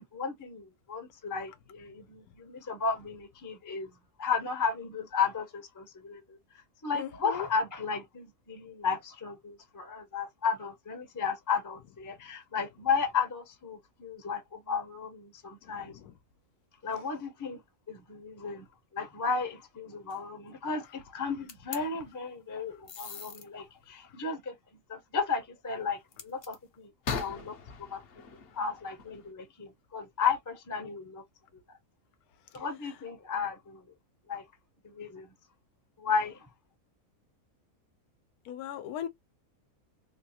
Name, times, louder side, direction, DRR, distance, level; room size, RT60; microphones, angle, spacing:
voice 1, 0.0-3.9 4.2-6.4 6.8-15.9 16.8-17.6 17.9-18.6 18.9-24.5 24.9-28.2 28.5-31.2 31.5-31.6 32.5-33.8 34.3-34.4 34.8-35.3 36.0-36.5, left 5 dB, 20° left, 0.5 m, -34 dB
voice 2, 6.9-7.5 15.6-16.1 32.5-32.6 38.4-39.1, left 10 dB, 85° left, 1.1 m, -39 dB
sound 1, 21.5-21.8 22.9-23.4 26.1-26.6 27.0-29.3, left 5 dB, 55° left, 0.7 m, -39 dB
3.3 x 2.3 x 2.7 m
omnidirectional pair, 1.5 m